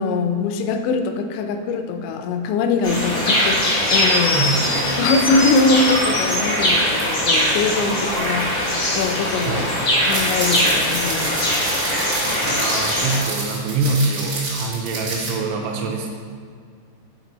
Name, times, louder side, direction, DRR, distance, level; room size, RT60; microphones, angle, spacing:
voice 1, 0.0-4.5 5.0-11.6, left 3 dB, 90° left, 6 dB, 2.8 m, -22 dB
sound 1, 2.8-13.2, left 1 dB, 70° left, 0.7 m, -21 dB
voice 2, 4.3-5.0 9.5-9.7 12.4-16.1, right 3 dB, 80° right, 1 dB, 2.6 m, -24 dB
sound 2, 10.0-15.3, right 2 dB, 60° right, 1.3 m, -29 dB
8.7 x 4.4 x 4.0 m, 2.1 s
omnidirectional pair, 5.0 m